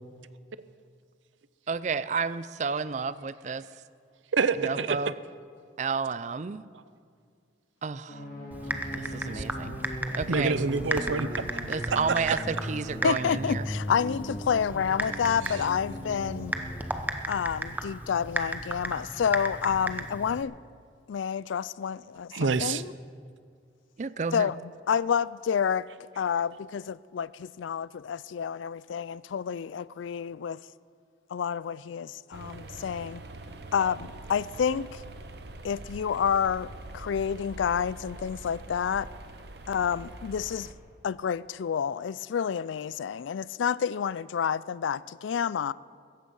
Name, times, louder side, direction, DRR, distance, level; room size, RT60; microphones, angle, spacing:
voice 1, 1.7-3.6 4.6-5.1 5.8-6.6 7.8-8.2 8.9-9.8 10.1-10.6 11.7-13.7 24.0-24.5, right 5 dB, 40° right, 0.4 m, -31 dB
voice 2, 4.3-5.0 9.3-9.4 10.3-12.4 15.4-15.5 22.3-22.8, right 4 dB, 85° right, 0.6 m, -28 dB
sound 1, 8.1-16.9, equal, 45° left, 2.3 m, -38 dB
Typing, 8.5-20.4, right 1 dB, 10° right, 0.7 m, -35 dB
voice 3, 13.0-16.6 17.3-20.5 21.1-22.9 24.3-24.6 24.9-25.9 26.2-30.6 31.3-33.2 33.7-35.0 35.6-39.1 39.7-40.7 41.0-45.7, left 7 dB, 85° left, 0.4 m, -29 dB
sound 2, 32.3-40.7, right 2 dB, 60° right, 1.1 m, -44 dB
16.0 x 14.5 x 5.5 m
head